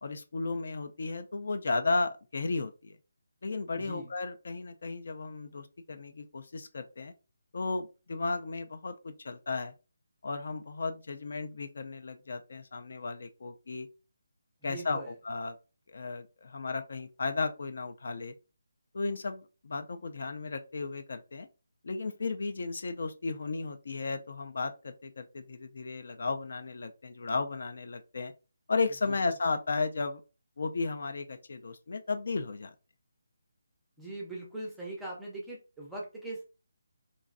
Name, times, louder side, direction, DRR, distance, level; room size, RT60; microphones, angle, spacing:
voice 1, 0.0-3.0 3.4-7.1 7.5-9.7 10.2-13.9 14.6-15.6 15.9-18.3 18.9-21.5 21.8-28.3 28.7-30.2 30.6-32.7, left 3 dB, 50° left, 8 dB, 0.4 m, -34 dB
voice 2, 3.7-4.1 14.6-15.1 29.1-29.2 34.0-36.4, right 2 dB, ahead, -4 dB, 0.5 m, -41 dB
3.0 x 2.6 x 2.5 m, 0.31 s
hypercardioid pair, 175°, 0 cm